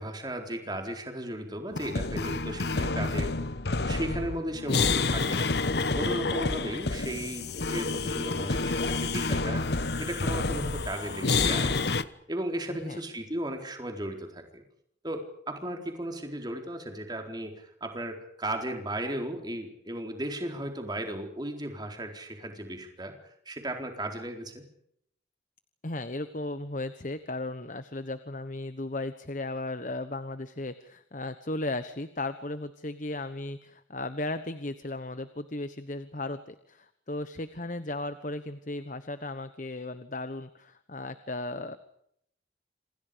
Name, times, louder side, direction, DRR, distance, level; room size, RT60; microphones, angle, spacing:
voice 1, 0.0-3.3 3.8-5.5 5.9-11.9 12.3-14.6 15.0-23.1 23.5-24.6, right 1 dB, 25° right, 4 dB, 4.2 m, -36 dB
sound 1, 1.7-12.0, left 3 dB, 60° left, 1.1 m, -29 dB
voice 2, 12.7-13.0 25.8-41.8, left 2 dB, 45° left, 11 dB, 1.2 m, -36 dB
28.0 x 27.0 x 5.2 m, 0.70 s
head